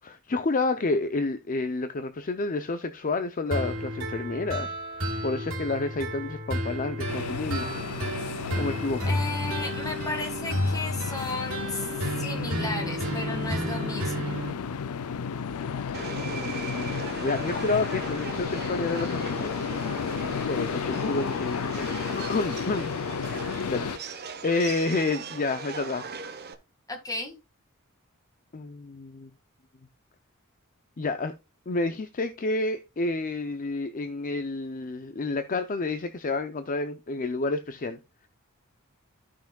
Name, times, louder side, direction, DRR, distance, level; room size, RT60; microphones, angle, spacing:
voice 1, 0.0-4.7 5.2-7.7 8.6-9.0 16.3-19.7 20.5-22.9 23.7-26.1 28.5-29.3 31.0-31.3 31.7-38.0, left 3 dB, 40° left, 0.6 m, -30 dB
sound 1, 3.5-14.5, equal, 70° right, 3.5 m, -32 dB
sound 2, 7.1-24.0, left 6 dB, 90° left, 0.5 m, -33 dB
voice 2, 9.1-11.9 12.2-14.4 26.9-27.4, left 2 dB, 15° left, 1.9 m, -34 dB
Subway metro underground, 15.9-26.5, right 5 dB, 45° right, 1.0 m, -39 dB
14.0 x 5.8 x 2.3 m
head